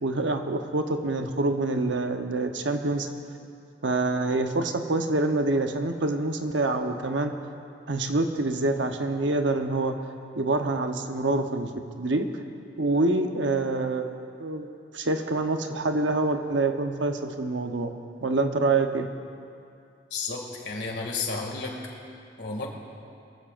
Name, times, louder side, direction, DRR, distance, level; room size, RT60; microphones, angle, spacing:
voice 1, 0.0-3.1 3.8-7.3 7.9-9.9 10.4-11.7 12.0-12.3 12.8-14.1 14.4-14.7 14.9-17.9 18.2-19.1, right 2 dB, 90° right, 5 dB, 1.0 m, -26 dB
voice 2, 20.1-21.8 22.4-22.7, left 4 dB, 70° left, 0 dB, 2.3 m, -32 dB
22.5 x 14.5 x 2.5 m, 2.4 s
head